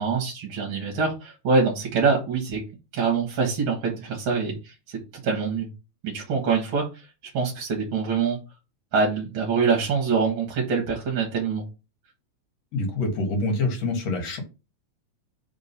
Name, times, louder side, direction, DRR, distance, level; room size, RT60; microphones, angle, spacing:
voice 1, 0.0-2.6 2.9-5.7 6.0-7.1 7.3-8.4 8.9-11.7, right 5 dB, 50° right, 0 dB, 2.1 m, -25 dB
voice 2, 12.7-14.4, left 2 dB, 60° left, 3 dB, 2.7 m, -26 dB
5.0 x 3.7 x 5.5 m, 0.28 s
omnidirectional pair, 3.3 m